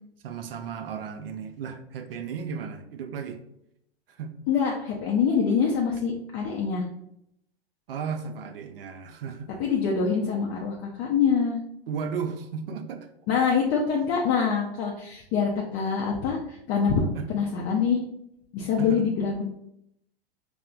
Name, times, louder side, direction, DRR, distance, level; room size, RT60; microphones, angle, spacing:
voice 1, 0.2-3.4 4.1-4.3 7.9-9.5 11.9-13.1 17.1-17.3 18.8-19.1, right 6 dB, 65° right, 7 dB, 0.5 m, -34 dB
voice 2, 4.5-6.8 9.6-11.6 13.3-18.0 18.5-19.4, left 6 dB, 35° left, -1 dB, 0.5 m, -25 dB
4.2 x 2.0 x 2.4 m, 0.76 s
hypercardioid pair, 105°, 31 cm